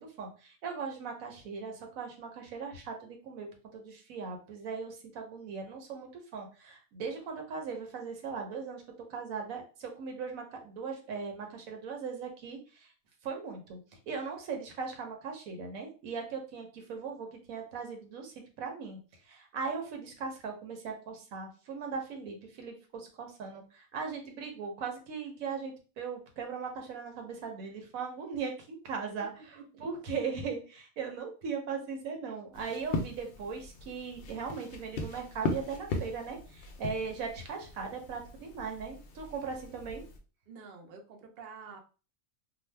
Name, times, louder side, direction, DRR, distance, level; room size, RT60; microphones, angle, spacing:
voice 1, 0.0-8.8 9.1-12.9 13.2-13.8 14.1-19.0 19.2-40.0, right 5 dB, 85° right, 3 dB, 1.1 m, -39 dB
sound 1, 32.5-40.2, left 2 dB, 65° left, 0.6 m, -39 dB
voice 2, 40.5-41.8, right 5 dB, 60° right, 3 dB, 0.6 m, -48 dB
2.6 x 2.1 x 3.2 m, 0.35 s
omnidirectional pair, 1.4 m